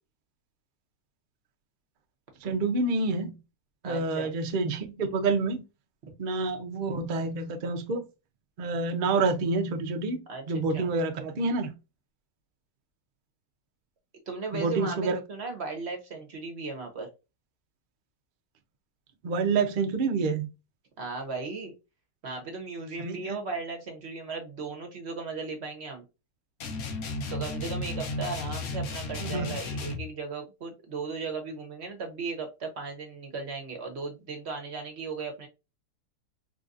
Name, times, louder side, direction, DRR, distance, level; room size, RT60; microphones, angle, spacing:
voice 1, 2.4-3.4 3.8-5.6 6.2-8.0 8.6-10.2 10.5-11.7 14.5-15.2 19.2-20.5 23.0-23.4 29.2-29.6, right 3 dB, 75° right, 0.4 m, -28 dB
voice 2, 3.8-4.3 10.3-10.4 10.7-10.9 14.3-17.1 21.0-21.7 22.2-26.0 27.3-35.5, right 4 dB, 50° right, 0.9 m, -36 dB
sound 1, 26.6-30.1, left 2 dB, 70° left, 1.2 m, -34 dB
3.9 x 2.5 x 2.4 m
omnidirectional pair, 1.7 m